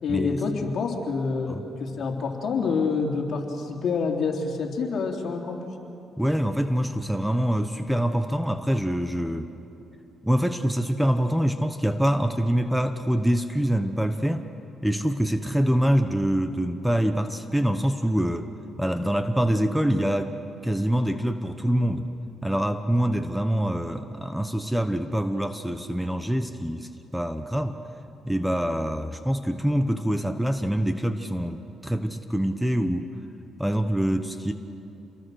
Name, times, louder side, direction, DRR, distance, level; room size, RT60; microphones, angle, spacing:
voice 1, 0.0-5.6, left 4 dB, 60° left, 1 dB, 3.2 m, -27 dB
voice 2, 6.2-9.5 10.2-14.5 14.8-18.5 18.8-20.4 20.6-22.1 22.4-27.8 28.2-33.1 33.6-34.5, equal, 5° right, 8 dB, 1.1 m, -25 dB
28.0 x 22.0 x 6.5 m, 2.9 s
cardioid pair, 90°, 0 cm